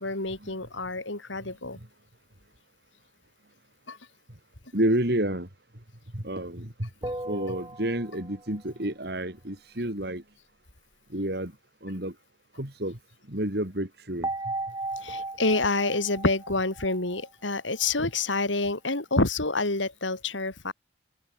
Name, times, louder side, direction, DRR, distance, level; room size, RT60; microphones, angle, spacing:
voice 1, 0.0-1.8 3.9-4.0 15.0-20.7, left 3 dB, 85° left, 3.8 m, -28 dB
voice 2, 4.7-5.5 6.1-10.2 11.1-11.5 11.8-12.1 12.6-13.0 13.3-14.3, right 1 dB, 55° right, 3.6 m, -30 dB
sound 1, 7.0-8.6 14.2-17.6, right 2 dB, 20° right, 7.5 m, -36 dB
open air
head